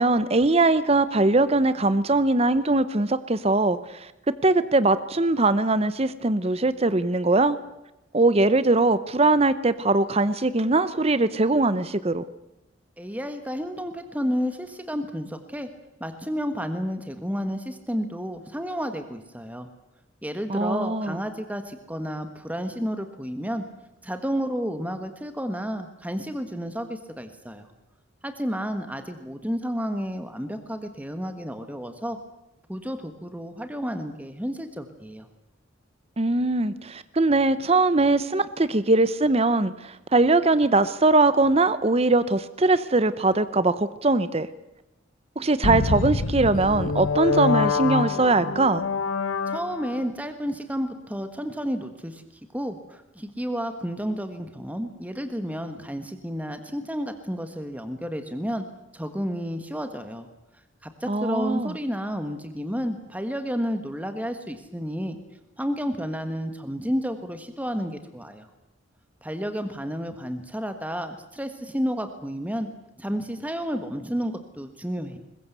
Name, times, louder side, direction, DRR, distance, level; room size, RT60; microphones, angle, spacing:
voice 1, 0.0-7.6 8.1-12.2 20.5-21.2 36.2-44.5 45.4-48.8 61.1-61.7, right 2 dB, 30° right, 14 dB, 0.8 m, -21 dB
voice 2, 13.0-15.7 16.0-19.7 20.2-23.6 24.0-27.7 28.2-32.2 32.7-35.3 49.5-52.2 52.5-58.6 58.9-60.3 60.8-65.2 65.6-68.5 69.2-72.7 73.0-75.2, equal, 10° right, 8 dB, 1.5 m, -31 dB
sound 1, 45.6-50.1, left 4 dB, 90° left, 1.2 m, -26 dB
22.0 x 20.5 x 8.2 m, 0.93 s
head